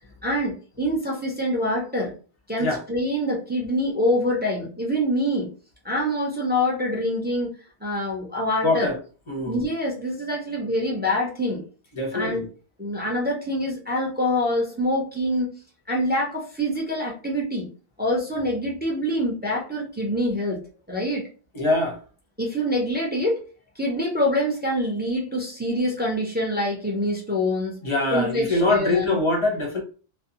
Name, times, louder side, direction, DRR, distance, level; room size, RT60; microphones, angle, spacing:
voice 1, 0.2-2.1 2.5-5.5 5.8-7.5 7.8-8.9 9.4-11.6 12.1-12.5 12.8-15.5 15.9-17.7 18.0-20.6 20.9-21.3 22.4-23.4 23.8-27.7 28.1-29.2, equal, 15° right, 0.5 m, -25 dB
voice 2, 8.6-9.0 9.3-9.7 11.9-12.5 21.5-22.0 27.8-29.8, left 2 dB, 30° left, 0.7 m, -23 dB
2.5 x 2.1 x 2.7 m
omnidirectional pair, 1.1 m